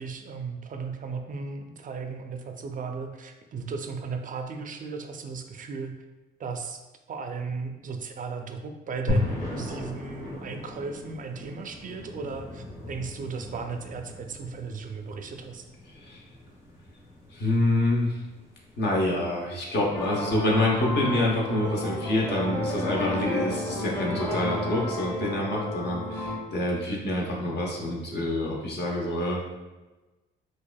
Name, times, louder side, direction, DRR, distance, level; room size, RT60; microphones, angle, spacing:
voice 1, 0.0-6.0 6.4-6.8 7.1-15.6, right 4 dB, 40° right, 5 dB, 0.4 m, -36 dB
sound 1, 9.1-19.3, left 2 dB, 90° left, 1.3 m, -36 dB
voice 2, 17.3-18.2 18.8-29.5, left 1 dB, 55° left, -3 dB, 0.9 m, -27 dB
sound 2, 19.9-26.4, left 1 dB, 10° left, 0.7 m, -31 dB
4.5 x 2.5 x 2.2 m, 1.1 s
cardioid pair, 90°, 20 cm